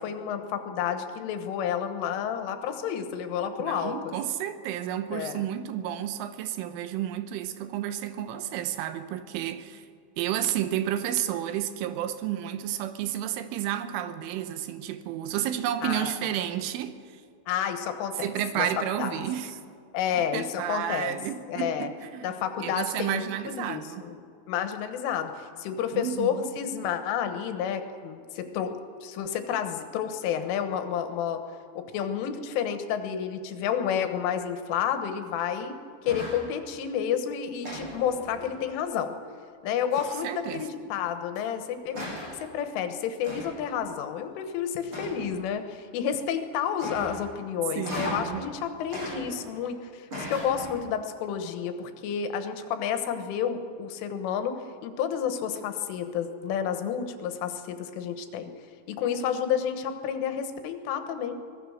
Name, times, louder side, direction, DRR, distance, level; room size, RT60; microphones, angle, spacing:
voice 1, 0.0-4.1 5.1-5.5 15.8-16.1 17.5-18.3 18.6-19.1 19.9-21.2 21.5-21.9 22.2-24.2 24.5-28.7 29.0-31.4 31.8-35.7 36.0-39.1 39.6-42.1 42.5-58.5 58.9-61.3, left 8 dB, 90° left, 3.8 m, -30 dB
voice 2, 3.6-9.8 10.2-17.2 18.2-19.5 20.1-22.3 22.6-24.1 26.0-26.5 40.2-40.7 47.8-48.5, right 11 dB, 90° right, 3.6 m, -31 dB
sound 1, 36.0-36.5 37.6-38.7 39.9-40.4 41.4-41.5 41.9-42.4 43.2-43.7 44.9-45.5 46.8-47.3 47.8-48.4 48.9-49.7 50.1-50.9, equal, 25° right, 8.5 m, -37 dB
24.0 x 18.5 x 6.5 m
omnidirectional pair, 5.5 m